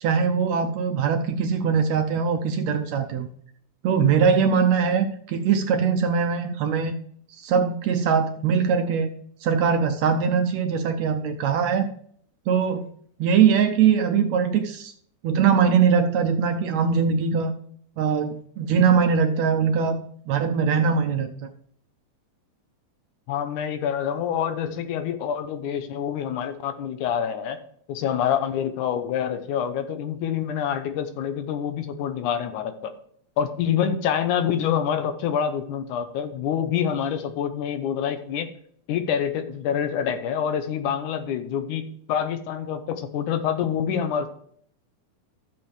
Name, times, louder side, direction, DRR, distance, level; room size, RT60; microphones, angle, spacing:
voice 1, 0.0-3.3 3.8-6.9 7.4-9.1 9.4-11.9 12.5-12.9 13.2-14.9 15.2-17.5 18.0-20.0 20.3-21.3, right 6 dB, 75° right, 5 dB, 1.7 m, -21 dB
voice 2, 23.3-27.6 27.9-32.9 33.4-38.5 38.9-44.3, left 8 dB, 75° left, 9 dB, 2.3 m, -26 dB
13.0 x 7.5 x 3.3 m, 0.63 s
omnidirectional pair, 3.6 m